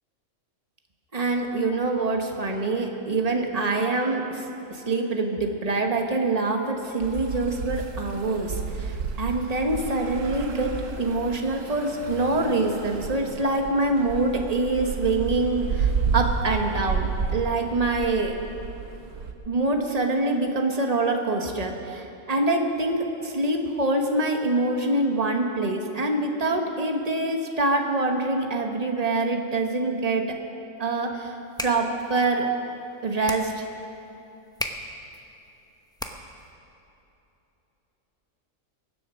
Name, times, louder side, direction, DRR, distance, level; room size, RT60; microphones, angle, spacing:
voice 1, 1.1-4.4 4.7-18.4 19.5-30.4 30.8-31.4 31.6-32.5 33.0-33.6, right 2 dB, 30° right, 3 dB, 1.3 m, -25 dB
sound 1, 7.0-19.3, right 5 dB, 75° right, 1.3 m, -31 dB
sound 2, 31.3-36.5, left 1 dB, 5° left, 0.6 m, -38 dB
22.5 x 7.8 x 6.2 m, 3.0 s
omnidirectional pair, 1.4 m